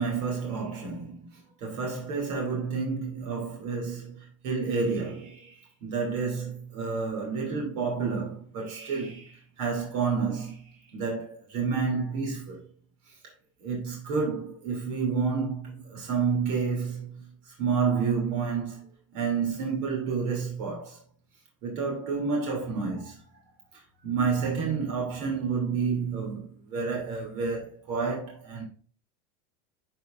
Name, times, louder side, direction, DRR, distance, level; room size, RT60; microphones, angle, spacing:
voice 1, 0.0-12.6 13.6-21.0 21.6-23.2 23.7-28.6, right 5 dB, 65° right, 2.6 m, -30 dB
12.5 x 4.1 x 2.5 m
supercardioid pair, 135°, 17 cm